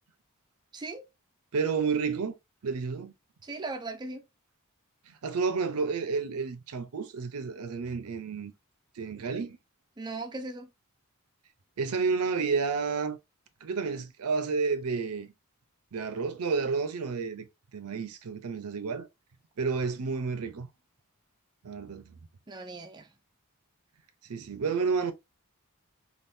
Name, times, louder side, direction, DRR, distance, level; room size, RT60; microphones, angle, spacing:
voice 1, 0.7-1.0 3.4-4.2 10.0-10.7 22.5-23.1, right 3 dB, 20° right, 0.4 m, -38 dB
voice 2, 1.5-2.3 2.6-3.1 5.1-8.5 9.0-9.6 11.8-13.2 13.6-15.3 15.9-17.4 17.7-19.1 19.6-20.7 21.6-22.1 24.3-25.1, right 5 dB, 75° right, 0.6 m, -30 dB
3.5 x 2.5 x 2.5 m
head